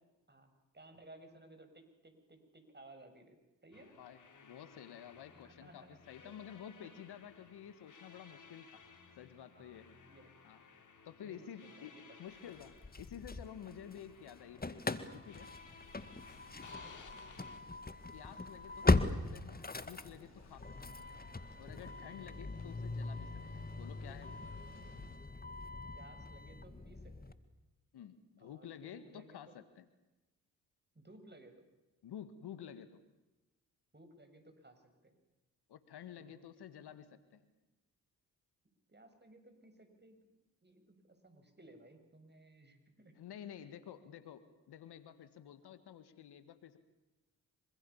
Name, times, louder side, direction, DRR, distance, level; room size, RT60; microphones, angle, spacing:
voice 1, 0.3-4.0 5.3-6.4 6.8-6.9 9.5-9.8 10.0-10.3 10.7-10.8 11.2-12.0 16.7-17.2 20.8-21.0 25.9-27.4 28.4-29.5 30.9-31.5 33.9-35.1 36.1-36.9 38.9-40.2 40.6-43.5 45.6-45.7, right 2 dB, 25° right, 7 dB, 7.5 m, -59 dB
sound 1, 3.7-17.6, left 5 dB, 45° left, 4.0 m, -59 dB
voice 2, 4.0-8.8 9.2-10.0 10.4-10.6 11.0-15.5 18.1-21.0 21.6-24.4 27.9-29.9 32.0-33.0 35.7-37.5 43.2-46.8, left 9 dB, 65° left, 13 dB, 1.9 m, -51 dB
Engine starting / Slam, 12.6-14.0 14.3-27.3, left 3 dB, 20° left, 2.1 m, -39 dB
sound 2, 15.4-25.2, left 2 dB, 85° left, 7.9 m, -60 dB
26.5 x 25.5 x 7.3 m, 1.0 s
hypercardioid pair, 40°, 42 cm